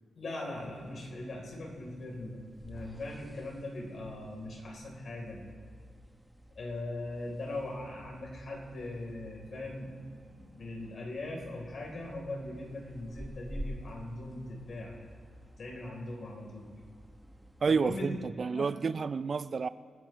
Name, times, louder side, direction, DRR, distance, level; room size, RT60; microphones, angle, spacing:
voice 1, 0.2-5.5 6.6-9.9 10.3-15.1 15.6-16.7 17.7-18.1 18.4-18.7, left 2 dB, 55° left, -1 dB, 3.5 m, -40 dB
sound 1, 0.5-18.2, equal, 5° right, 0.9 m, -50 dB
voice 2, 17.6-19.7, right 5 dB, 45° right, 15 dB, 0.3 m, -30 dB
26.5 x 10.0 x 3.1 m, 2.2 s
wide cardioid pair, 115°, 0 cm